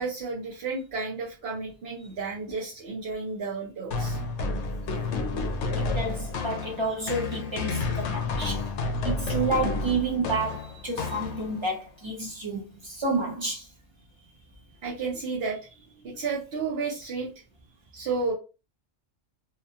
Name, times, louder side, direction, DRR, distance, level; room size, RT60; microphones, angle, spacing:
voice 1, 0.0-4.2 14.8-17.3 17.9-18.3, right 4 dB, 60° right, 0.9 m, -32 dB
sound 1, 3.9-11.7, left 3 dB, 70° left, 0.8 m, -30 dB
voice 2, 5.8-8.6 9.0-13.7, right 2 dB, 40° right, 0.4 m, -30 dB
2.8 x 2.2 x 2.7 m
omnidirectional pair, 1.3 m